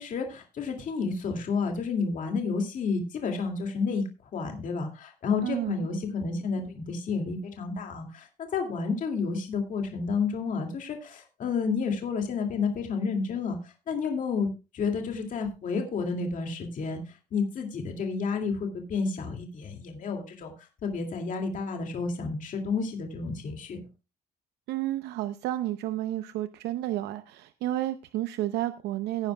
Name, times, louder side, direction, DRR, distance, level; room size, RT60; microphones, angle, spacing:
voice 1, 0.0-4.0 4.3-23.8, left 5 dB, 50° left, 3 dB, 2.2 m, -31 dB
voice 2, 5.4-5.9 24.7-29.3, right 14 dB, 80° right, 11 dB, 0.7 m, -31 dB
18.0 x 9.8 x 2.2 m, 0.29 s
cardioid pair, 110°, 17 cm